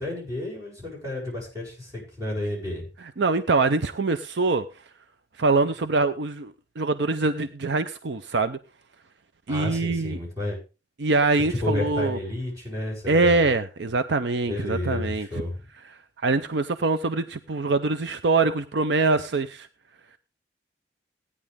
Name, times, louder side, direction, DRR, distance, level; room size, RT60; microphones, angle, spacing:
voice 1, 0.0-2.9 9.5-10.6 11.5-13.5 14.4-15.6, left 1 dB, 20° right, -3 dB, 7.3 m, -31 dB
voice 2, 3.2-4.6 5.4-8.6 9.5-10.2 11.0-12.2 13.1-15.3 16.2-19.7, right 3 dB, 65° right, 11 dB, 0.6 m, -24 dB
16.5 x 9.8 x 3.6 m, 0.32 s
head